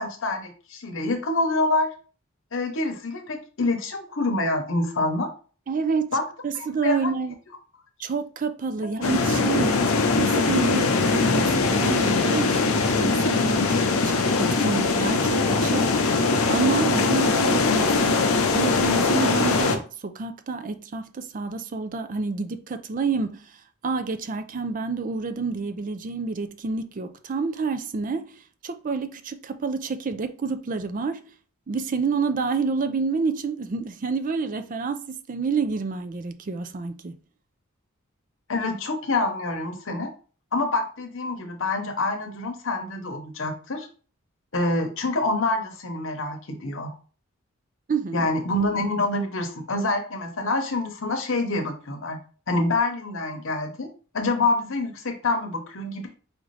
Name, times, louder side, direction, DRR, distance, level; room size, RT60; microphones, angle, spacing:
voice 1, 0.0-1.9 2.5-5.3 6.1-6.2 6.5-7.1 8.8-9.1 38.5-40.1 40.5-43.9 44.5-46.9 48.1-52.2 52.5-53.9 54.1-56.1, left 2 dB, 65° left, 0.9 m, -26 dB
voice 2, 5.7-6.1 6.4-7.4 8.0-9.8 10.2-16.2 16.5-18.2 18.5-23.5 23.8-31.2 31.7-37.2 47.9-48.3, right 4 dB, 40° right, 0.4 m, -28 dB
sound 1, 9.0-19.8, left 3 dB, 90° left, 0.6 m, -21 dB
4.8 x 2.6 x 3.2 m
head